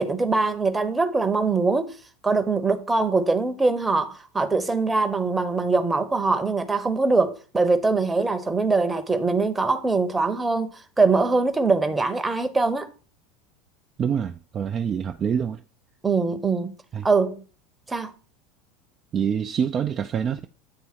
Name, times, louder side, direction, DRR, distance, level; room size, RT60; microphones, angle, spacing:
voice 1, 0.0-1.9 2.2-12.9 16.0-16.7 17.0-17.4 17.9-18.1, right 3 dB, 10° right, 0.8 m, -22 dB
voice 2, 14.0-15.6 16.9-17.1 19.1-20.4, right 7 dB, 30° right, 0.4 m, -26 dB
8.6 x 3.4 x 4.4 m
figure-of-eight pair, 75°, 0 cm